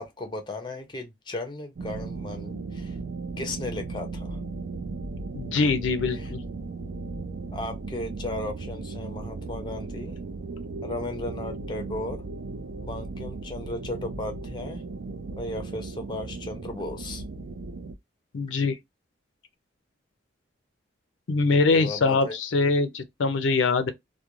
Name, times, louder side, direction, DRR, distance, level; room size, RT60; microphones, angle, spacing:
voice 1, 0.0-3.0 3.4-4.4 6.1-6.3 7.5-10.2 10.8-12.2 12.8-14.8 15.4-17.2 21.7-22.4, left 2 dB, 25° left, 0.5 m, -35 dB
sound 1, 1.8-17.9, right 3 dB, 55° right, 0.4 m, -36 dB
voice 2, 5.3-6.4 18.3-18.8 21.3-23.9, left 3 dB, 75° left, 0.5 m, -23 dB
2.4 x 2.2 x 2.9 m
head